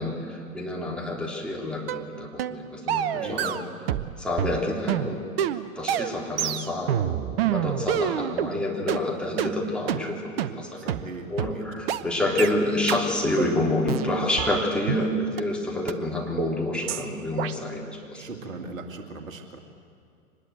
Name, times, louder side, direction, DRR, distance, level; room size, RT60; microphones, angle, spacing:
voice 1, 0.0-3.6 4.2-5.2 5.7-11.0 11.3-18.3, left 1 dB, ahead, -3 dB, 3.5 m, -28 dB
sound 1, 1.9-2.1 2.4-2.6 2.9-4.1 4.4-8.5 8.9-9.0 9.4-9.5 9.9-10.0 10.4-10.5 10.9-11.0 11.4-11.5 11.9-12.0 12.4-12.5 12.9-13.0 13.4-13.5 13.9-15.0 15.4-15.5 15.9-16.0 16.4-16.5 16.9-17.0 17.4-17.5, right 10 dB, 45° right, 1.0 m, -27 dB
voice 2, 3.0-3.4 10.8-12.4 18.1-19.6, right 3 dB, 65° right, 5 dB, 2.4 m, -40 dB
24.5 x 20.5 x 8.1 m, 2.4 s
figure-of-eight pair, 105°, 43 cm